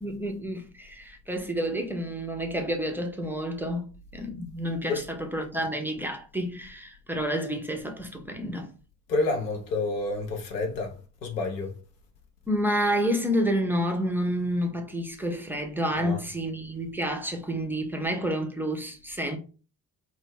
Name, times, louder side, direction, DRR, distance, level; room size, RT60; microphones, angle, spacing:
voice 1, 0.0-8.7 12.5-19.4, equal, 5° right, 0.3 m, -29 dB
voice 2, 9.1-11.0 11.2-11.7 16.0-16.2, left 3 dB, 85° left, 0.6 m, -29 dB
2.2 x 2.1 x 3.1 m
figure-of-eight pair, 45°, 49 cm